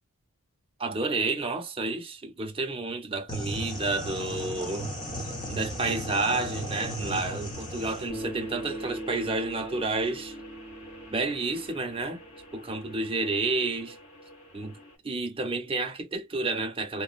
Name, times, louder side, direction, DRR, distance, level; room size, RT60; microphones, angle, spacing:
voice 1, 0.8-4.9 5.5-10.3 11.1-12.2 12.5-14.0 14.5-14.8 15.0-17.0, right 3 dB, 25° right, 0.6 m, -30 dB
sound 1, 3.3-8.1, equal, 20° left, 0.8 m, -36 dB
sound 2, 3.5-15.0, equal, 75° left, 1.4 m, -47 dB
Bass guitar, 8.1-12.5, right 1 dB, 55° left, 1.5 m, -40 dB
2.8 x 2.1 x 2.4 m
head